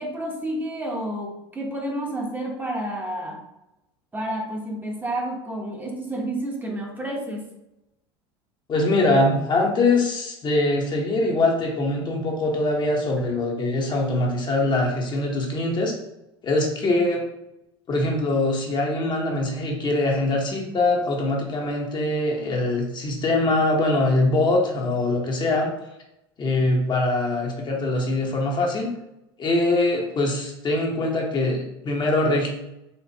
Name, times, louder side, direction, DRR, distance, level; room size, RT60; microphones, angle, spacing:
voice 1, 0.0-3.4 4.1-7.4, right 1 dB, 15° right, 0 dB, 0.9 m, -30 dB
voice 2, 8.7-15.9 16.4-17.2 17.9-25.7 26.4-28.9 29.4-32.5, left 2 dB, 35° left, 0 dB, 0.9 m, -23 dB
4.3 x 2.5 x 2.8 m, 0.89 s
hypercardioid pair, 90°, 14 cm